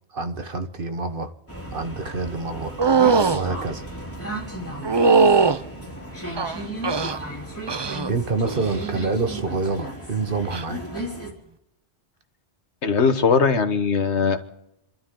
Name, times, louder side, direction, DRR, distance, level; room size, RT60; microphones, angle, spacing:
voice 1, 0.1-1.3 1.7-2.8 3.3-3.9 8.1-10.8, right 3 dB, 55° right, 8 dB, 1.4 m, -27 dB
sound 1, 1.5-11.3, right 1 dB, 10° left, 3.2 m, -35 dB
sound 2, 2.8-3.4 4.8-5.6 6.4-7.2 7.7-8.1 8.5-8.9 10.4-10.6, right 5 dB, 30° right, 0.5 m, -19 dB
voice 2, 12.8-14.4, left 5 dB, 90° left, 8 dB, 1.6 m, -20 dB
29.0 x 12.5 x 3.8 m, 0.86 s
omnidirectional pair, 1.1 m